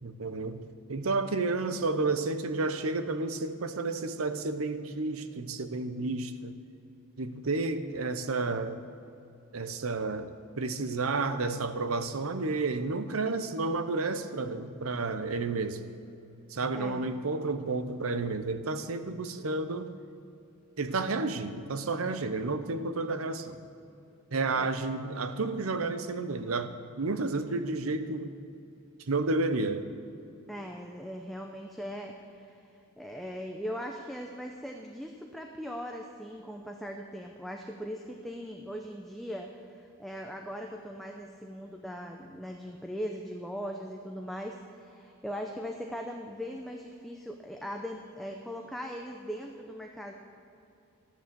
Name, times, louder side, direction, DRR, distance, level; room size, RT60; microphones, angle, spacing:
voice 1, 0.0-0.6 0.9-6.5 7.2-8.8 9.5-15.8 16.5-19.9 20.8-23.7 24.3-28.4 29.1-29.9, right 3 dB, 85° right, 11 dB, 0.8 m, -31 dB
voice 2, 16.7-17.1 24.6-24.7 30.5-32.7 33.0-50.1, equal, ahead, 2 dB, 0.6 m, -40 dB
13.0 x 9.3 x 6.9 m, 2.7 s
head